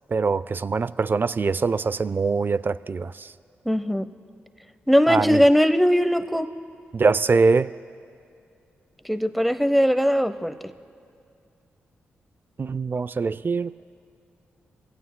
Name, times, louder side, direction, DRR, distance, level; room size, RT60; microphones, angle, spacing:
voice 1, 0.1-3.3 5.1-5.4 6.9-7.7 12.6-13.7, right 4 dB, 45° right, 17 dB, 0.4 m, -23 dB
voice 2, 3.7-4.1 4.9-6.5 9.1-10.5, equal, ahead, 11 dB, 0.8 m, -20 dB
24.5 x 16.5 x 2.2 m, 2.4 s
supercardioid pair, 45°, 5 cm